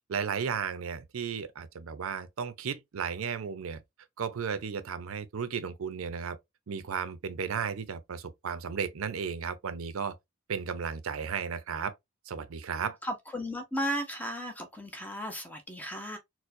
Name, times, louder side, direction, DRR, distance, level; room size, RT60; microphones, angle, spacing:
voice 1, 0.1-3.8 4.2-6.4 6.7-10.2 10.5-11.9 12.3-13.0, right 6 dB, 80° right, 0.5 m, -34 dB
voice 2, 13.0-16.2, equal, 10° left, 0.5 m, -35 dB
4.4 x 2.1 x 2.5 m
head